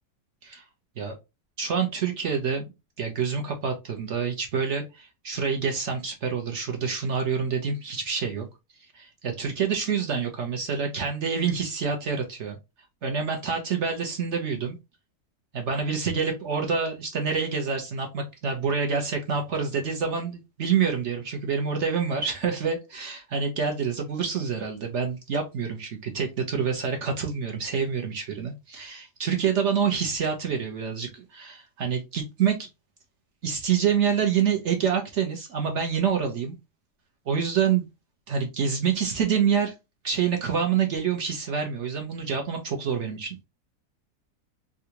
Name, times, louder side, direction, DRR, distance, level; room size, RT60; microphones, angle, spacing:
voice 1, 1.6-2.7 3.0-8.4 8.9-12.6 13.0-14.8 15.5-32.7 33.4-36.5 37.3-37.9 38.3-39.7 40.0-43.4, right 6 dB, 60° right, 0.9 m, -27 dB
3.7 x 2.3 x 2.8 m
omnidirectional pair, 1.7 m